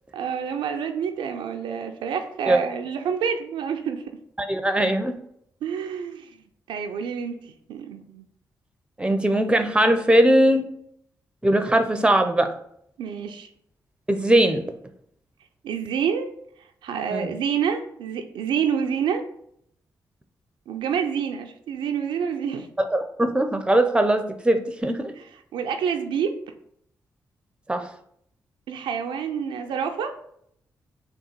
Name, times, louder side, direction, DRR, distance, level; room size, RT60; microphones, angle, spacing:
voice 1, 0.1-4.0 5.6-6.3 6.7-8.2 13.0-13.5 15.6-16.3 16.8-19.2 20.7-22.7 25.5-26.4 28.7-30.1, right 7 dB, 80° right, 5 dB, 0.4 m, -28 dB
voice 2, 4.4-5.2 9.0-10.7 11.4-12.5 14.1-14.7 17.1-17.4 22.8-25.1 27.7-27.8, right 1 dB, 10° right, 8 dB, 0.6 m, -20 dB
3.7 x 2.3 x 4.3 m, 0.70 s
hypercardioid pair, 40°, 8 cm